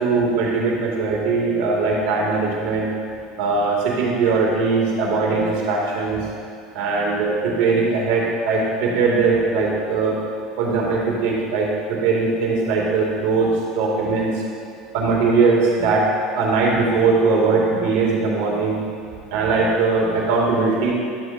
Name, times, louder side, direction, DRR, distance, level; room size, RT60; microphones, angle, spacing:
voice 1, 0.0-2.9 3.4-6.2 6.7-10.2 10.6-11.7 12.0-13.5 13.7-14.3 14.9-16.1 16.3-18.8 19.3-20.9, right 4 dB, 70° right, -3 dB, 2.3 m, -20 dB
12.0 x 7.9 x 2.7 m, 2.4 s
supercardioid pair, 95°, 0 cm